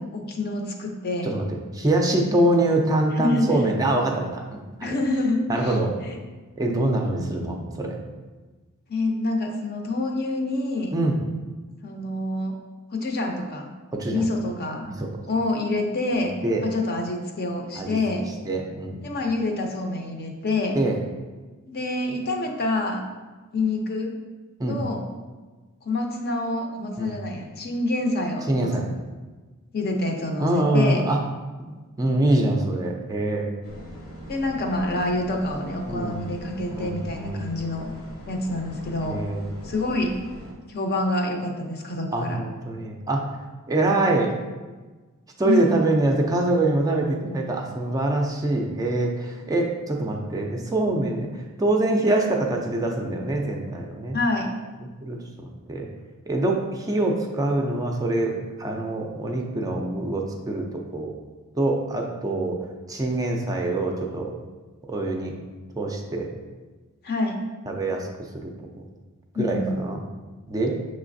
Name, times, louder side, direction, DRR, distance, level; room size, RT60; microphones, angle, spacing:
voice 1, 0.0-1.3 3.2-3.5 4.8-5.8 6.1-6.2 8.9-10.9 11.8-12.6 12.9-13.7 14.1-14.9 15.3-16.3 16.6-18.3 19.0-20.8 21.7-23.1 23.5-24.1 24.7-25.2 25.9-28.7 29.7-31.0 34.3-37.9 38.3-39.2 39.6-40.1 40.7-42.4 45.5-45.7 54.1-54.5 67.0-67.4 69.3-69.8, left 2 dB, 45° left, 2 dB, 0.6 m, -27 dB
voice 2, 1.2-4.9 5.5-5.9 6.6-7.9 10.9-11.2 13.9-14.2 15.0-15.1 16.4-16.6 17.8-18.0 18.5-19.1 20.7-21.0 24.6-24.8 27.0-27.2 28.5-28.9 30.4-31.2 31.7-33.5 35.9-36.2 36.7-37.5 39.0-39.4 42.1-43.3 43.7-44.3 45.4-54.2 55.0-55.9 56.3-61.1 61.6-62.6 62.9-64.3 64.9-65.4 65.8-66.3 67.7-68.1 68.3-68.5 69.4-70.0 70.5-70.8, right 2 dB, 15° right, 1 dB, 0.4 m, -24 dB
sound 1, 33.6-40.5, equal, 65° left, 0.9 m, -40 dB
6.4 x 3.1 x 2.6 m, 1.3 s
head